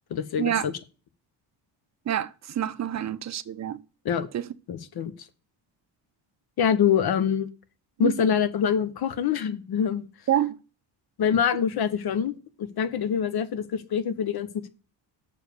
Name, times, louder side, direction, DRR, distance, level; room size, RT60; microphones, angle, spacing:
voice 1, 0.1-0.8 4.0-4.3 4.7-5.1 6.6-7.5 8.0-10.1 11.2-14.7, left 8 dB, 50° left, 1.0 m, -25 dB
voice 2, 2.1-3.8 4.3-4.4 8.0-8.1 10.3-10.5, right 11 dB, 35° right, 0.7 m, -27 dB
6.8 x 4.9 x 6.7 m
cardioid pair, 90°, 47 cm